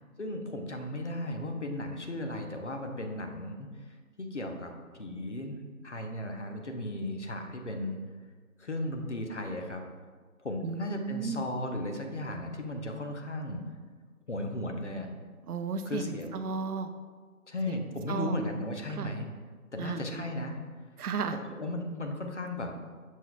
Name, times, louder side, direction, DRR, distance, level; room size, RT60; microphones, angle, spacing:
voice 1, 0.2-4.7 5.0-8.0 8.6-9.8 10.4-13.6 14.3-15.1 15.9-16.3 17.5-19.3 19.7-20.6 21.5-22.7, left 1 dB, 55° left, 4 dB, 0.5 m, -36 dB
voice 2, 10.6-11.4 15.5-16.9 17.7-18.4 18.9-19.1 19.8-20.2 21.0-21.4, right 5 dB, 90° right, 9 dB, 0.5 m, -35 dB
6.1 x 2.2 x 3.7 m, 1.5 s
figure-of-eight pair, 175°, 44 cm